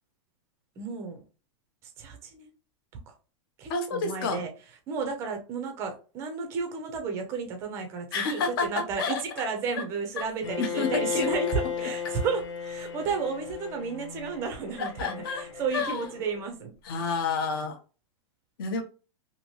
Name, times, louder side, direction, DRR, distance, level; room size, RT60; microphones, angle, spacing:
voice 1, 0.8-1.2 1.8-2.5 3.1-3.2 3.6-4.5 4.9-16.8, right 5 dB, 15° right, 0.5 m, -32 dB
voice 2, 3.7-4.4 8.1-8.7 9.0-9.2 10.2-10.3 10.6-11.3 14.8-15.4 15.7-16.1 16.8-17.8 18.6-18.8, left 5 dB, 45° left, 0.7 m, -29 dB
Bowed string instrument, 10.4-16.4, left 7 dB, 70° left, 1.0 m, -35 dB
2.8 x 2.7 x 2.9 m
supercardioid pair, 175°, 17 cm